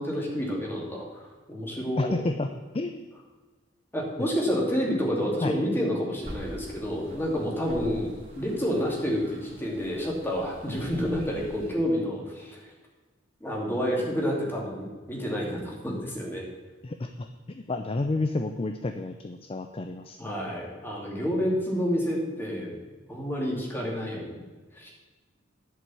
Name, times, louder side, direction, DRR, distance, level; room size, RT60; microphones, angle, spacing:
voice 1, 0.0-2.2 3.9-12.7 13.4-16.4 20.2-22.8 23.1-24.3 24.7-24.9, equal, 10° left, -2 dB, 2.6 m, -29 dB
voice 2, 2.0-2.5 2.7-3.1 5.4-5.5 16.8-20.5, left 2 dB, 30° left, 7 dB, 0.5 m, -30 dB
sound 1, 6.2-11.8, equal, 45° right, 2.6 m, -45 dB
11.0 x 5.4 x 8.4 m, 1.3 s
head